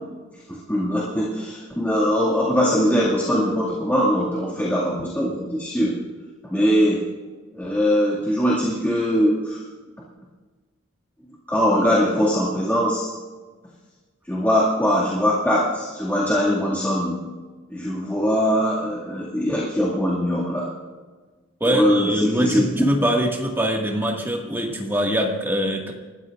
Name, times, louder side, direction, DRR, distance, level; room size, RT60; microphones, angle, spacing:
voice 1, 0.5-6.0 6.4-7.0 7.5-9.6 11.5-13.1 14.3-17.3 17.7-20.7 21.7-22.7, equal, 10° left, -7 dB, 2.2 m, -21 dB
voice 2, 21.6-25.9, equal, 10° right, -1 dB, 1.9 m, -23 dB
29.0 x 14.0 x 2.6 m, 1.4 s
head